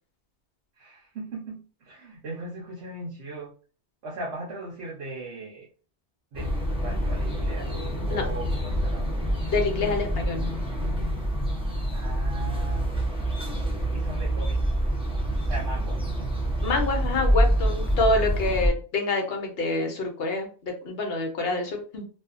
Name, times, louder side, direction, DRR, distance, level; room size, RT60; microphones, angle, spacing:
voice 1, 0.8-3.5 4.0-5.7 6.3-6.6 6.8-7.7 8.0-9.2 11.6-12.9 13.9-14.6 15.4-16.0, right 2 dB, 75° right, -4 dB, 1.0 m, -38 dB
sound 1, 6.3-18.7, equal, 10° right, 0.4 m, -26 dB
voice 2, 9.5-10.4 16.6-22.0, left 2 dB, 60° left, 2 dB, 0.9 m, -27 dB
2.6 x 2.3 x 2.4 m, 0.36 s
omnidirectional pair, 1.2 m